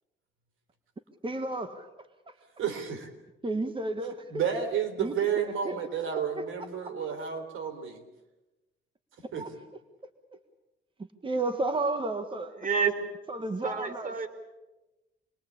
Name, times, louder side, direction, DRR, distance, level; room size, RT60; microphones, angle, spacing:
voice 1, 1.2-1.9 2.3-2.4 3.4-4.3 5.0-5.8 9.4-9.5 11.2-12.5 13.3-14.1, right 2 dB, 25° right, 9 dB, 1.8 m, -32 dB
voice 2, 2.6-3.1 4.3-8.0 9.3-9.5, right 7 dB, 80° right, 8 dB, 3.5 m, -31 dB
voice 3, 12.6-13.0 13.6-14.3, right 6 dB, 40° right, 9 dB, 3.5 m, -29 dB
27.0 x 21.0 x 8.6 m, 1.1 s
cardioid pair, 90°, 20 cm